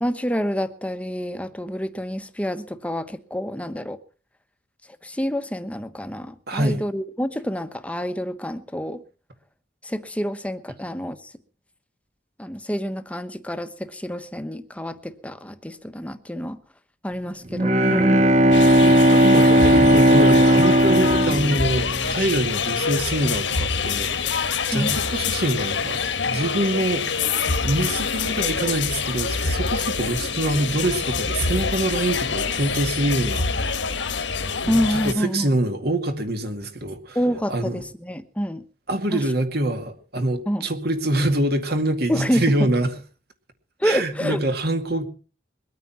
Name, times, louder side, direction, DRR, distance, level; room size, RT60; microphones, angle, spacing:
voice 1, 0.0-4.0 5.0-9.0 9.8-11.3 12.4-16.6 17.0-18.2 24.7-24.9 34.7-35.5 37.1-38.6 39.1-39.2 40.5-40.7 42.1-42.7 43.8-44.4, equal, 5° left, 1.1 m, -27 dB
voice 2, 6.5-6.8 18.8-27.1 27.6-33.8 34.6-37.2 37.5-37.8 38.9-42.9 43.8-45.0, right 1 dB, 55° right, 2.2 m, -25 dB
Bowed string instrument, 17.5-22.4, equal, 40° right, 1.2 m, -16 dB
sound 1, 18.5-35.1, left 5 dB, 75° left, 1.6 m, -26 dB
22.5 x 9.2 x 5.8 m
head